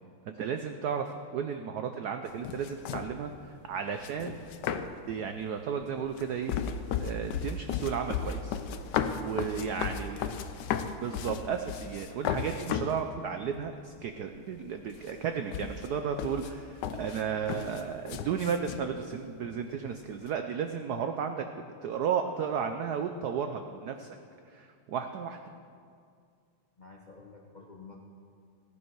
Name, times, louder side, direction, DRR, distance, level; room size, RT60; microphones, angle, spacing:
voice 1, 0.3-3.3 3.7-4.4 5.1-6.5 7.0-8.6 9.2-10.2 11.0-21.4 21.8-24.1 24.5-25.4, right 7 dB, 80° right, 6 dB, 0.8 m, -33 dB
sound 1, 2.3-3.2 4.0-5.1 5.8-13.0 13.6-13.7 13.9-14.7 14.9-18.9, left 7 dB, 70° left, 1.1 m, -34 dB
voice 2, 10.0-10.4 26.8-28.0, left 4 dB, 55° left, -1 dB, 0.5 m, -49 dB
15.0 x 11.0 x 4.6 m, 2.3 s
omnidirectional pair, 2.4 m